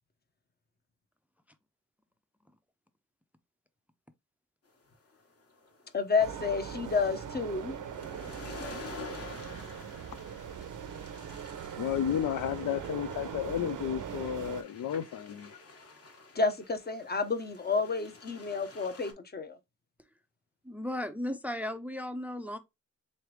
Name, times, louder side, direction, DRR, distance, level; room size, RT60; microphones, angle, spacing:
sound 1, 4.9-19.1, left 3 dB, 50° left, 1.4 m, -49 dB
voice 1, 5.9-7.7 16.4-19.6, left 4 dB, 30° left, 0.8 m, -30 dB
sound 2, 6.2-14.6, right 8 dB, 80° right, 0.6 m, -41 dB
voice 2, 11.8-15.5, left 9 dB, 85° left, 0.5 m, -32 dB
voice 3, 20.6-22.6, left 1 dB, 5° right, 0.4 m, -35 dB
3.9 x 3.2 x 3.1 m
wide cardioid pair, 120°, 31 cm